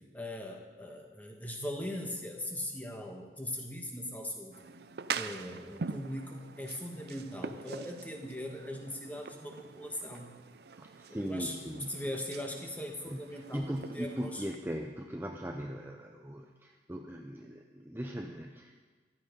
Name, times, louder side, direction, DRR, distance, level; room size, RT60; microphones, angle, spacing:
voice 1, 0.1-4.6 5.1-10.4 11.1-11.6 11.9-14.4, left 1 dB, 10° left, 1 dB, 1.6 m, -40 dB
sound 1, 4.5-14.6, right 5 dB, 65° right, 0.5 m, -44 dB
voice 2, 10.8-12.0 13.1-18.8, equal, 10° right, 3 dB, 0.6 m, -39 dB
14.5 x 12.0 x 5.3 m, 1.5 s
head